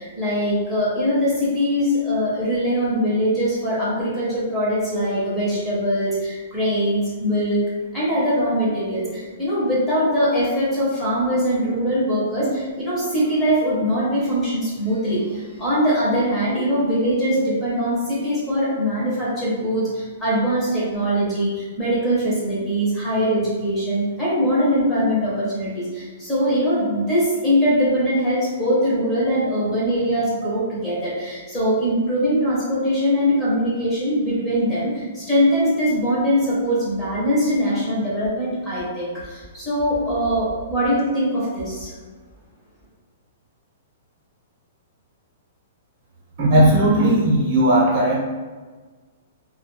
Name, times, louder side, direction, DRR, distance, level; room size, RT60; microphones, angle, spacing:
voice 1, 0.0-7.6 7.9-41.9, equal, 10° left, -9 dB, 0.5 m, -22 dB
voice 2, 46.4-48.2, right 1 dB, 35° right, -5 dB, 0.7 m, -16 dB
2.2 x 2.1 x 2.9 m, 1.4 s
hypercardioid pair, 175°, 0 cm